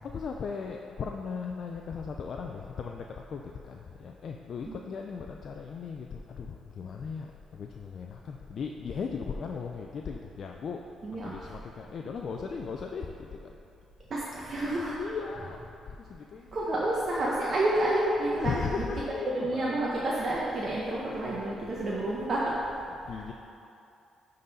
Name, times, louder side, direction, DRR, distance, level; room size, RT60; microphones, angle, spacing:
voice 1, 0.0-10.8 11.2-13.6 15.0-15.6 15.9-16.7 18.4-19.8 22.8-23.3, left 5 dB, 55° left, 2 dB, 0.4 m, -37 dB
voice 2, 11.0-11.3 14.1-15.0 16.5-18.6 19.2-22.5, right 1 dB, 45° right, -6 dB, 1.0 m, -29 dB
10.5 x 3.9 x 4.1 m, 2.7 s
cardioid pair, 90°, 0 cm